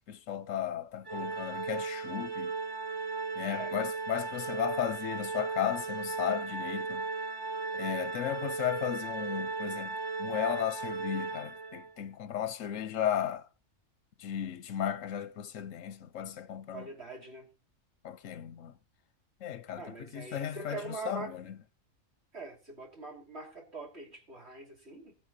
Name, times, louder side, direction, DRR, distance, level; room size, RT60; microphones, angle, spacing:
voice 1, 0.1-2.5 3.4-7.1 7.7-13.5 14.2-16.9 18.0-18.7 19.4-19.8 20.1-21.4, left 10 dB, 85° left, 1.1 m, -35 dB
Organ, 1.1-11.9, right 4 dB, 20° right, 0.8 m, -36 dB
voice 2, 3.4-3.8 16.7-17.5 19.8-21.4 22.3-25.1, right 3 dB, 55° right, 3.6 m, -43 dB
20.5 x 10.0 x 2.8 m
omnidirectional pair, 1.3 m